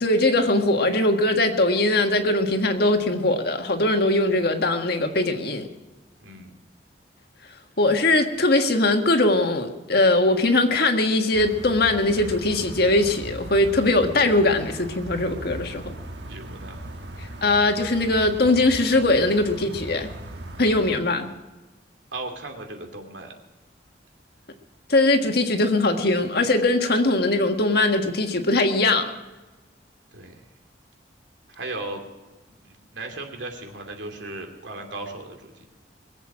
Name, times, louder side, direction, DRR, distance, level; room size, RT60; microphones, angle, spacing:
voice 1, 0.0-5.7 7.8-15.9 17.4-20.1 20.6-21.3 24.9-29.1, left 2 dB, 60° left, 4 dB, 1.6 m, -21 dB
voice 2, 6.2-6.6 16.3-16.8 22.1-23.3 26.1-26.2 30.1-30.4 31.5-32.0 32.5-35.7, right 2 dB, 90° right, 3 dB, 2.8 m, -36 dB
sound 1, 11.3-21.0, right 1 dB, 70° right, 1.4 m, -38 dB
22.0 x 8.2 x 6.2 m, 1.2 s
head